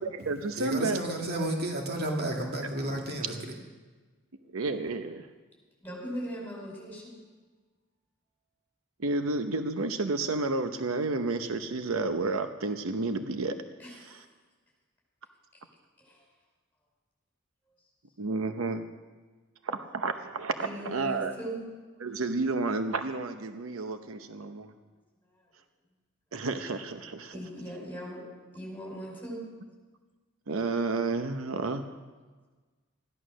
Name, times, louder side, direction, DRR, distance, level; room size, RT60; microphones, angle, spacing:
voice 1, 0.0-1.0 4.5-5.3 9.0-13.6 14.0-14.2 18.2-18.9 19.6-21.3 22.0-24.7 26.3-27.4 30.5-31.9, right 3 dB, 80° right, 8 dB, 0.8 m, -31 dB
voice 2, 0.6-3.5, right 1 dB, 50° right, 0 dB, 2.0 m, -32 dB
voice 3, 5.8-7.1 13.8-14.2 16.0-16.2 20.6-21.6 27.3-28.2 28.5-29.4, equal, 10° left, -3 dB, 5.1 m, -39 dB
14.5 x 11.5 x 6.3 m, 1.4 s
head